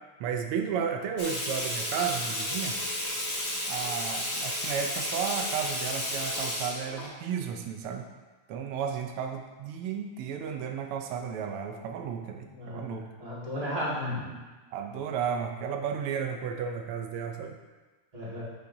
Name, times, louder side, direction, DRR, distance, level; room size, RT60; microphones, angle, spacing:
voice 1, 0.2-2.8 3.7-8.1 8.5-13.1 14.7-17.5, right 7 dB, 85° right, 4 dB, 1.6 m, -33 dB
Water tap faucet / Sink (filling or washing), 1.2-7.1, left 1 dB, 35° left, 1.5 m, -32 dB
voice 2, 12.5-14.4 18.1-18.5, left 1 dB, 20° right, -7 dB, 1.8 m, -34 dB
9.9 x 5.6 x 2.7 m, 1.3 s
omnidirectional pair, 2.4 m